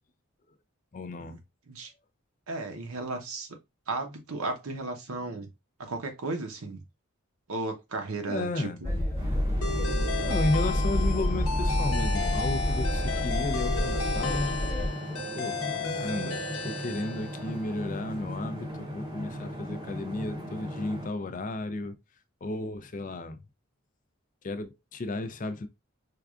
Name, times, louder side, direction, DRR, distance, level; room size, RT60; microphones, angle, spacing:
voice 1, 0.9-1.4 8.3-8.8 10.2-14.6 15.3-15.6 16.0-22.0 22.4-23.4 24.4-25.7, left 2 dB, 35° left, 0.4 m, -33 dB
voice 2, 2.5-3.5 3.9-5.5 5.8-6.8 7.5-8.9, right 3 dB, 90° right, 0.8 m, -34 dB
sound 1, 8.8-14.9, left 1 dB, 15° left, 1.0 m, -28 dB
sound 2, 9.1-21.1, equal, 20° right, 0.6 m, -38 dB
sound 3, 9.6-17.7, left 4 dB, 85° left, 0.8 m, -34 dB
4.6 x 2.3 x 2.4 m
head